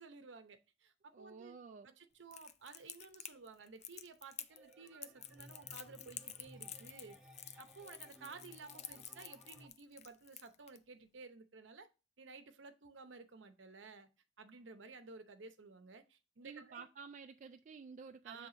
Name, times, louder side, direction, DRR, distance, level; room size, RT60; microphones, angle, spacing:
voice 1, 0.0-1.6 1.8-7.2 7.6-11.9 12.2-14.1 14.4-16.9 18.2-18.5, right 4 dB, 70° right, 0.7 m, -54 dB
voice 2, 1.1-1.9 16.4-18.5, right 5 dB, 40° right, 0.3 m, -52 dB
Crackle, 2.3-10.8, left 10 dB, 35° left, 0.4 m, -50 dB
sound 1, 4.5-9.7, right 1 dB, 5° right, 1.2 m, -60 dB
7.2 x 3.5 x 3.8 m
head